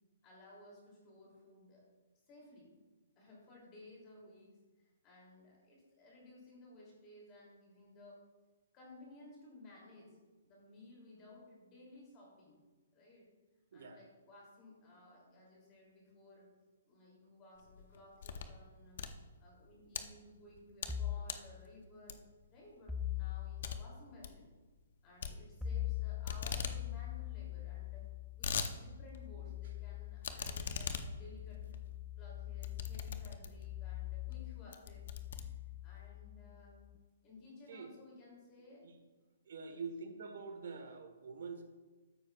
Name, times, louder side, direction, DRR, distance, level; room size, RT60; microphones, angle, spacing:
voice 1, 0.2-1.8 2.3-2.7 3.2-8.2 8.7-10.2 10.4-12.6 12.9-13.3 13.7-16.5 16.9-19.0 19.4-22.2 22.5-24.5 25.0-28.0 28.4-31.8 32.2-35.1 35.3-36.9 37.2-38.8 39.7-39.8, left 2 dB, 20° left, -4 dB, 2.8 m, -57 dB
sound 1, 17.6-18.6 18.9-20.0 20.5-21.0 21.2-21.5 22.1-22.5 22.8-22.9 23.2-23.3 23.6-23.8 24.1-24.4 25.2-25.9 26.2-26.8 27.1-27.2 27.4-27.5 28.0-28.7 29.1-29.2 30.2-33.7 34.3-34.4 34.7-36.0, left 6 dB, 50° left, 0.7 m, -41 dB
sound 2, 20.9-21.3 22.9-23.8 25.6-37.0, left 12 dB, ahead, 0.3 m, -43 dB
voice 2, 39.5-41.6, right 4 dB, 60° right, 5 dB, 1.2 m, -45 dB
12.5 x 9.3 x 2.3 m, 1.2 s
hypercardioid pair, 175°, 0 cm